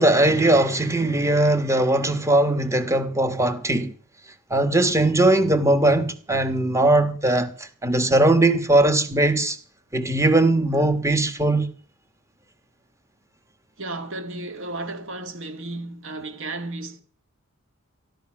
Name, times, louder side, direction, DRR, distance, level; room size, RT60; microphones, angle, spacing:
voice 1, 0.0-3.9 4.5-9.6 9.9-11.7, right 2 dB, 15° right, 1.3 m, -20 dB
voice 2, 13.8-17.0, right 2 dB, 60° right, 2.4 m, -33 dB
15.5 x 12.0 x 6.1 m
head